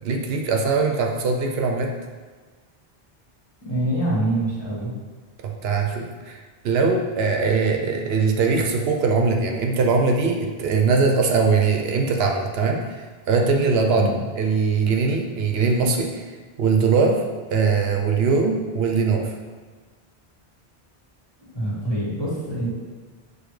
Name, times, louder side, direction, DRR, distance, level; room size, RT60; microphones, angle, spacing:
voice 1, 0.0-1.9 5.4-16.3 16.6-17.2 17.5-19.3, right 4 dB, 75° right, 2 dB, 0.8 m, -21 dB
voice 2, 3.6-4.9 13.9-14.2 21.4-22.7, right 1 dB, 25° left, -7 dB, 1.2 m, -25 dB
6.8 x 2.3 x 3.1 m, 1.4 s
omnidirectional pair, 1.0 m